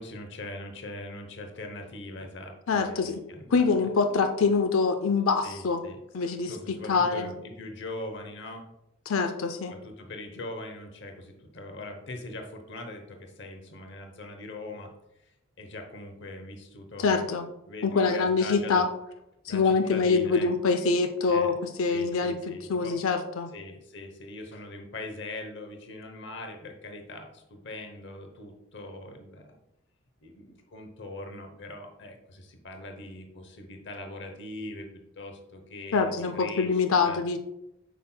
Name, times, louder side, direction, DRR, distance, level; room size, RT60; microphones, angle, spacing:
voice 1, 0.0-3.8 5.4-6.0 6.4-8.6 9.7-14.9 15.6-17.3 17.7-18.8 19.5-20.5 21.3-21.5 21.9-23.1 23.5-29.6 30.2-34.9 35.1-37.2, left 2 dB, 55° left, 5 dB, 0.8 m, -41 dB
voice 2, 2.7-3.2 3.5-5.8 6.1-7.3 9.1-9.7 17.0-17.5 17.8-18.9 19.5-21.5 21.8-22.4 22.7-23.5 35.9-37.4, left 4 dB, 80° left, 7 dB, 0.5 m, -25 dB
8.1 x 5.6 x 2.2 m, 0.87 s
head